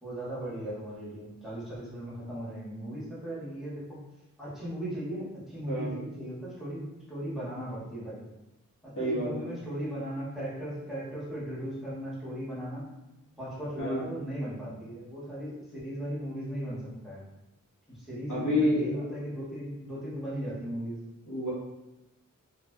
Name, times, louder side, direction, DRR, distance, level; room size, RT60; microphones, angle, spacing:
voice 1, 0.0-4.0 4.4-8.3 8.8-12.9 13.4-17.2 17.9-21.0, equal, ahead, -9 dB, 1.4 m, -37 dB
voice 2, 9.0-9.5 13.8-14.0 18.3-18.9 21.3-21.5, left 1 dB, 65° left, -8 dB, 1.1 m, -28 dB
3.2 x 2.6 x 2.2 m, 0.95 s
wide cardioid pair, 45°, 33 cm